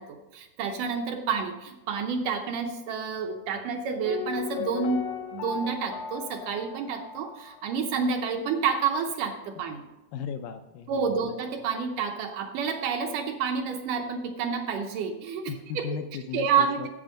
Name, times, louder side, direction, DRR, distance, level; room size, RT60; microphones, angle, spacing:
voice 1, 0.0-5.0 5.3-9.8 10.9-16.0 16.3-16.9, right 6 dB, 75° right, 4 dB, 2.1 m, -29 dB
Piano, 4.1-7.8 8.1-8.2, left 7 dB, 65° left, 1.4 m, -37 dB
voice 2, 10.1-11.1 15.5-16.9, left 7 dB, 80° left, 7 dB, 2.0 m, -36 dB
11.0 x 8.0 x 5.1 m, 1.1 s
omnidirectional pair, 4.2 m